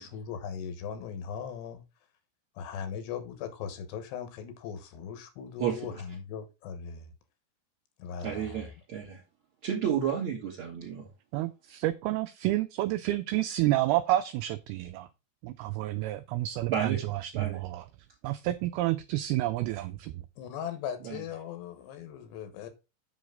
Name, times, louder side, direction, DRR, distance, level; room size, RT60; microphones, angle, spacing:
voice 1, 0.0-1.8 2.6-7.1 8.0-8.7 20.4-22.7, left 7 dB, 80° left, 9 dB, 3.3 m, -39 dB
voice 2, 8.2-9.2 9.6-11.1 16.7-17.0 17.3-17.6 21.0-21.2, right 8 dB, 35° right, -1 dB, 2.9 m, -31 dB
voice 3, 11.3-15.1 15.4-17.9 18.2-20.2, right 15 dB, 85° right, 12 dB, 2.2 m, -29 dB
7.7 x 6.4 x 3.8 m, 0.27 s
omnidirectional pair, 4.9 m